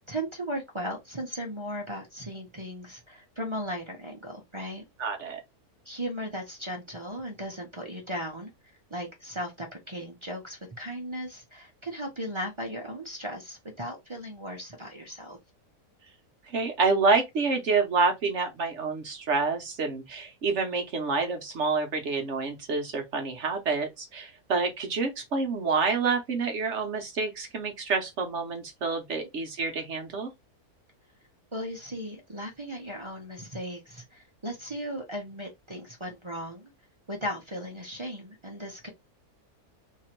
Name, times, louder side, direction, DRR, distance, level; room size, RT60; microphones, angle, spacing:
voice 1, 0.1-4.8 5.8-8.5 8.9-15.4 31.5-36.7 37.1-38.9, equal, 30° right, 0.5 m, -37 dB
voice 2, 5.0-5.4 16.5-30.3, right 4 dB, 60° right, 0.9 m, -28 dB
2.9 x 2.6 x 4.3 m
omnidirectional pair, 1.6 m